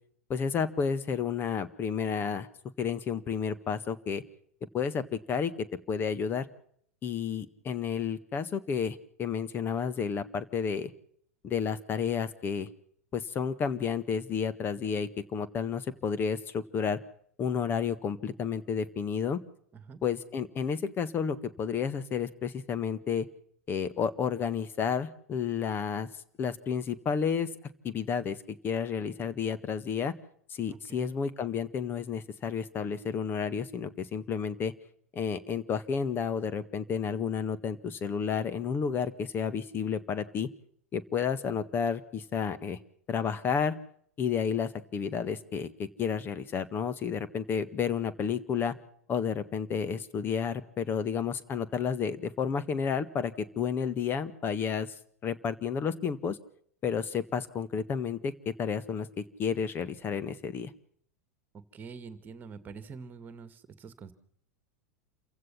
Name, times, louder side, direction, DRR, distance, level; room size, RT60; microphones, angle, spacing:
voice 1, 0.3-2.5 2.8-4.2 4.7-5.5 5.9-6.4 7.0-10.9 11.4-12.7 13.1-17.0 17.4-19.4 20.0-23.3 23.7-26.1 26.4-27.5 27.8-30.1 30.5-34.7 35.1-40.5 40.9-42.8 43.1-43.8 44.2-48.7 49.1-54.9 55.2-56.4 56.8-60.7, left 6 dB, 25° left, 14 dB, 1.7 m, -31 dB
voice 2, 30.7-31.1 61.7-64.1, right 5 dB, 25° right, 13 dB, 2.3 m, -46 dB
28.5 x 16.0 x 5.8 m, 0.63 s
figure-of-eight pair, 90°, 8 cm